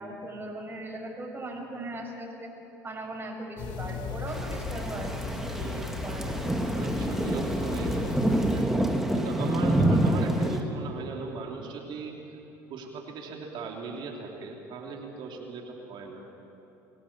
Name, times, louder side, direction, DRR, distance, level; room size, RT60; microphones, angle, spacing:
voice 1, 0.0-2.5 2.8-6.5, right 1 dB, 25° right, 0 dB, 6.1 m, -39 dB
sound 1, 3.6-8.6, left 4 dB, 60° left, 3.3 m, -36 dB
Thunder / Rain, 4.3-10.6, right 1 dB, 5° right, 2.0 m, -27 dB
voice 2, 5.5-6.0 6.7-12.2 12.7-16.2, right 4 dB, 60° right, 1 dB, 3.1 m, -39 dB
23.5 x 17.0 x 7.4 m, 3.0 s
hypercardioid pair, 75°, 9 cm